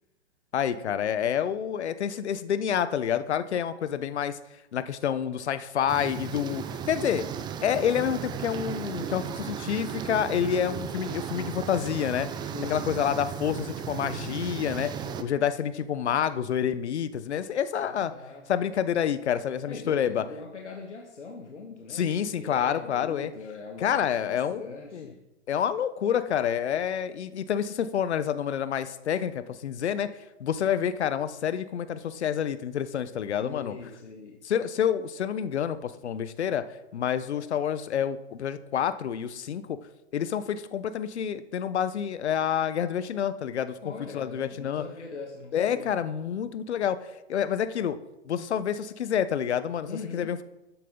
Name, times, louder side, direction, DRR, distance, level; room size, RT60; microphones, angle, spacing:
voice 1, 0.5-4.4 4.7-7.3 7.6-18.1 18.5-20.2 21.9-23.3 23.8-24.7 24.9-25.1 25.5-30.1 30.4-33.7 34.4-39.8 40.1-44.8 45.5-47.0 47.3-48.0 48.2-49.9 50.1-50.4, left 9 dB, 70° left, 13 dB, 1.0 m, -28 dB
sound 1, 5.9-15.2, right 8 dB, 15° right, 0.5 m, -35 dB
voice 2, 12.5-13.3 17.8-18.4 19.7-25.2 33.4-34.4 43.8-45.9 49.8-50.4, left 4 dB, 90° left, 1 dB, 1.6 m, -41 dB
13.0 x 9.2 x 3.9 m, 0.94 s
hypercardioid pair, 120°, 34 cm